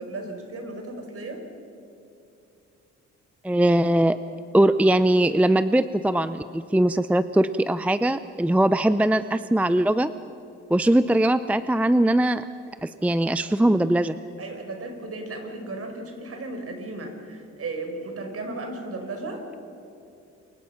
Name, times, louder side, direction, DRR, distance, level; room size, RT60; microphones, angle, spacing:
voice 1, 0.0-1.4 14.4-19.5, right 2 dB, 50° right, 4 dB, 4.8 m, -35 dB
voice 2, 3.4-4.2 4.5-10.1 10.7-12.4 12.8-14.1, right 1 dB, 5° right, 13 dB, 0.5 m, -21 dB
28.0 x 23.5 x 5.7 m, 2.7 s
cardioid pair, 90°, 30 cm